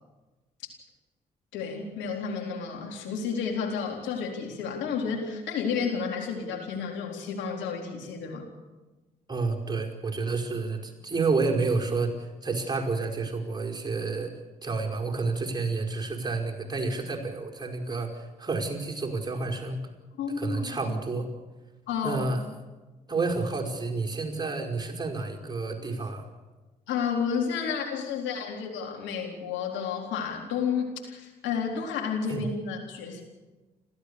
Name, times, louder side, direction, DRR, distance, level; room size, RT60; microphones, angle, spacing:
voice 1, 1.5-8.5 20.2-20.8 21.9-22.2 26.9-33.2, left 6 dB, 75° left, 0 dB, 4.0 m, -31 dB
voice 2, 9.3-14.3 14.6-19.9 20.4-21.3 22.0-22.4 23.1-26.3 32.3-32.4, right 3 dB, 20° right, 0 dB, 5.1 m, -30 dB
30.0 x 13.5 x 7.0 m, 1.2 s
hypercardioid pair, 45°, 19 cm